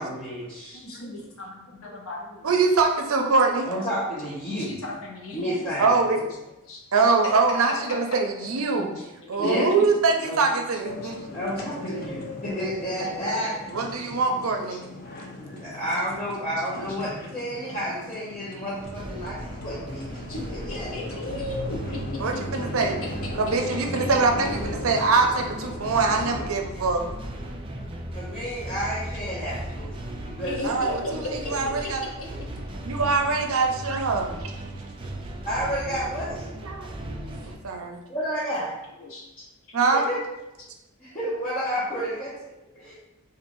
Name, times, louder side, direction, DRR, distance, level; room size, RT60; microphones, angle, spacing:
voice 1, 0.0-0.8 3.6-4.7 5.3-5.9 9.4-9.7 10.2-10.4 11.3-13.5 15.4-20.2 20.7-20.9 28.1-29.9 30.2-30.6 31.1-31.2 35.4-36.4 38.1-38.7 39.9-40.2 41.0-42.4 42.7-42.9, equal, 25° left, -11 dB, 0.9 m, -30 dB
voice 2, 0.7-2.5 4.6-5.6 6.7-6.8 7.2-7.3 8.4-8.5 8.9-9.8 10.7-11.4 12.0-12.3 14.7-14.8 20.3-22.9 23.2-24.1 24.8-25.0 26.4-27.5 30.4-32.5 33.4-33.5 39.0-39.3 40.6-40.7 42.8-42.9, left 2 dB, 75° left, -2 dB, 0.9 m, -37 dB
voice 3, 2.4-3.7 5.8-6.2 6.9-8.9 9.3-11.2 13.7-14.8 22.2-22.9 23.4-27.0 27.6-27.7 30.6-32.0 32.9-34.5 36.6-38.0 39.7-40.0, right 4 dB, 70° right, 3 dB, 0.5 m, -23 dB
sound 1, 10.8-26.5, left 1 dB, 45° left, 0.5 m, -38 dB
sound 2, 18.8-37.6, right 1 dB, 25° right, 0.3 m, -37 dB
4.5 x 2.5 x 2.6 m, 0.95 s
head